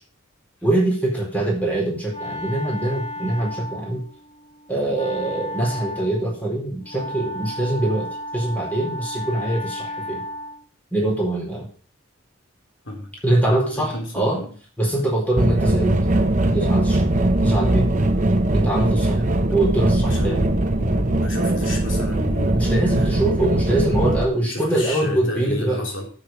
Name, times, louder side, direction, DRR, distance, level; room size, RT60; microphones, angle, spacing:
voice 1, 0.6-4.0 4.7-10.2 10.9-11.7 13.2-14.4 14.8-16.0 16.5-17.0 17.4-17.9 18.5-19.2 19.5-20.4 22.5-25.8, right 1 dB, 10° left, 4.2 m, -23 dB
Wind instrument woodwind instrument, 1.6-10.7, left 1 dB, 35° left, 2.9 m, -34 dB
voice 2, 13.5-14.6 19.0-19.4 20.1-22.6 22.9-23.1 24.4-26.1, left 1 dB, 60° left, 3.4 m, -32 dB
sound 1, 15.4-24.2, right 1 dB, 40° right, 0.9 m, -20 dB
8.4 x 7.6 x 7.6 m
head